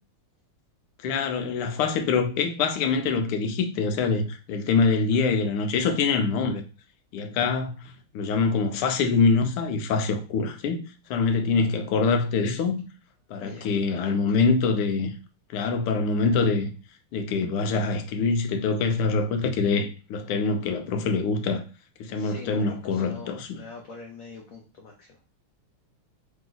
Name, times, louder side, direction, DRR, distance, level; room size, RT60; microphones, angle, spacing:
voice 1, 1.0-6.6 7.1-10.8 11.1-12.8 13.3-15.1 15.5-16.7 17.1-21.6 22.0-23.6, left 4 dB, 90° left, 1.6 m, -24 dB
voice 2, 13.3-14.4 22.1-25.2, left 4 dB, 75° left, 0.8 m, -44 dB
3.6 x 3.0 x 3.9 m
omnidirectional pair, 2.4 m